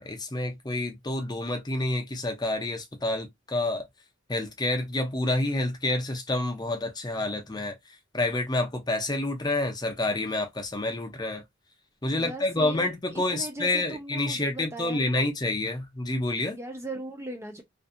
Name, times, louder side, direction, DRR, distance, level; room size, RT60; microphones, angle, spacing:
voice 1, 0.0-3.9 4.3-7.7 8.1-11.4 12.0-16.6, left 2 dB, 20° left, 0.6 m, -28 dB
voice 2, 12.2-15.3 16.6-17.6, right 2 dB, 15° right, 0.3 m, -38 dB
2.5 x 2.3 x 2.6 m
head